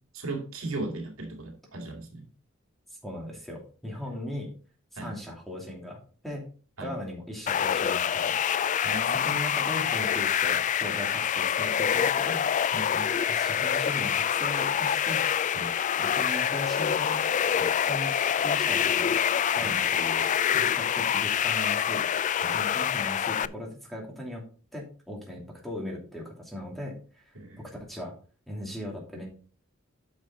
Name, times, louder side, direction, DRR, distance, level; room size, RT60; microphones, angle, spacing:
voice 1, 0.1-2.3 5.0-5.1 6.8-6.9 8.8-9.4 12.7-13.1 15.5-15.7 17.6-17.7 19.6-19.8 22.4-22.6 27.3-27.6, right 2 dB, 85° right, 2.2 m, -37 dB
voice 2, 2.9-4.5 5.0-6.0 6.2-6.4 6.8-8.4 9.1-12.5 13.3-15.3 16.0-17.2 17.9-19.1 19.5-20.3 20.5-22.0 22.5-24.4 24.7-28.1 28.5-29.3, left 1 dB, ahead, 2.7 m, -38 dB
sound 1, 7.5-23.5, left 8 dB, 35° left, 0.3 m, -26 dB
9.3 x 6.0 x 3.9 m
head